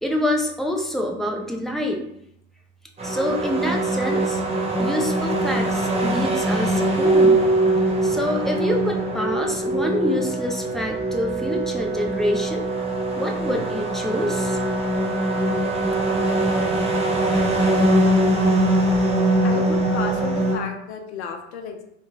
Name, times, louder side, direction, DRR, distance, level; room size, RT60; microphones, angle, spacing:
voice 1, 0.0-2.0 3.0-4.4 4.8-7.5 8.0-12.6 13.1-14.6, left 1 dB, ahead, 1 dB, 0.4 m, -26 dB
sound 1, 3.0-20.6, right 1 dB, 20° right, 0.7 m, -22 dB
voice 2, 19.4-21.8, left 6 dB, 75° left, 5 dB, 0.6 m, -32 dB
2.9 x 2.2 x 3.4 m, 0.75 s
hypercardioid pair, 85°, 34 cm